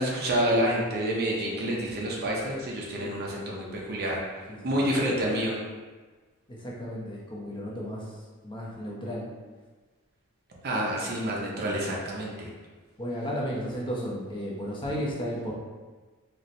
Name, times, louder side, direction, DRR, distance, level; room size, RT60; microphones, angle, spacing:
voice 1, 0.0-5.6 10.6-12.5, equal, 45° right, -3 dB, 0.6 m, -28 dB
voice 2, 6.5-8.0 8.4-9.3 13.0-15.5, equal, 20° left, -5 dB, 0.6 m, -33 dB
4.2 x 2.1 x 2.5 m, 1.3 s
head